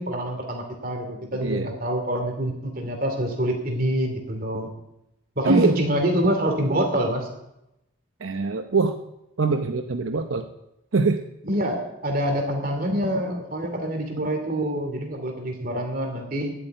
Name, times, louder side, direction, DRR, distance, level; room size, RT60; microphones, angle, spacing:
voice 1, 0.0-4.7 5.4-7.3 11.4-16.5, right 1 dB, 45° right, 4 dB, 2.7 m, -26 dB
voice 2, 1.4-1.7 5.4-5.8 8.2-8.9 9.4-10.5 10.9-11.2, right 4 dB, 80° right, 6 dB, 0.8 m, -23 dB
11.5 x 8.5 x 9.1 m, 0.87 s
head